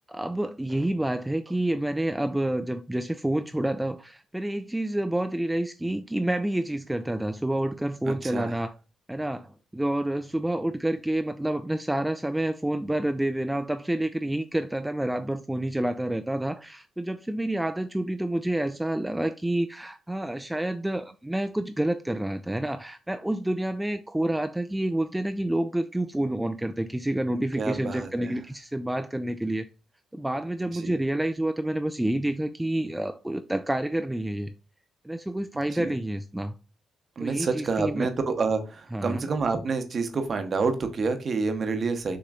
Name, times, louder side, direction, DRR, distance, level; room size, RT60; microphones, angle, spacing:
voice 1, 0.1-8.7 9.1-29.7 30.1-34.5 35.0-36.5 37.2-38.1 38.9-39.2, right 1 dB, 10° right, 0.3 m, -28 dB
voice 2, 8.1-8.5 27.3-28.4 30.7-30.9 35.7-35.9 37.2-42.2, right 4 dB, 50° right, 0.8 m, -28 dB
6.0 x 2.9 x 2.4 m
supercardioid pair, 65°, 0 cm